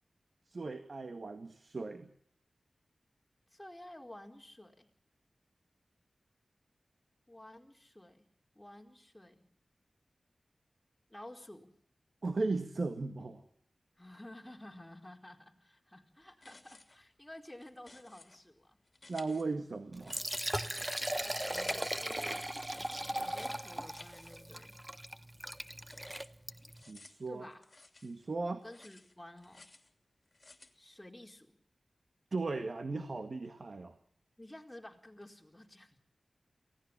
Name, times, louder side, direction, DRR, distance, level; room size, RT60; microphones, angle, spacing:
voice 1, 0.5-2.1 12.2-13.4 19.1-20.2 26.9-27.4 28.0-28.6 32.3-34.0, right 3 dB, 65° right, 8 dB, 1.8 m, -37 dB
voice 2, 3.5-4.9 7.3-8.2 8.5-9.4 11.1-11.7 14.0-18.8 21.1-22.5 23.2-24.8 27.3-27.6 28.6-29.7 30.7-31.6 34.4-36.0, left 1 dB, 15° left, 2 dB, 4.3 m, -52 dB
sound 1, 16.3-17.1 17.4-18.4 18.8-20.9 21.2-22.4 22.7-24.9 25.2-28.3 28.6-29.9 30.3-30.8, left 2 dB, 45° left, 2.9 m, -55 dB
Liquid, 19.9-26.8, right 1 dB, 15° right, 1.2 m, -38 dB
23.5 x 17.5 x 7.4 m, 0.66 s
cardioid pair, 45°, 0 cm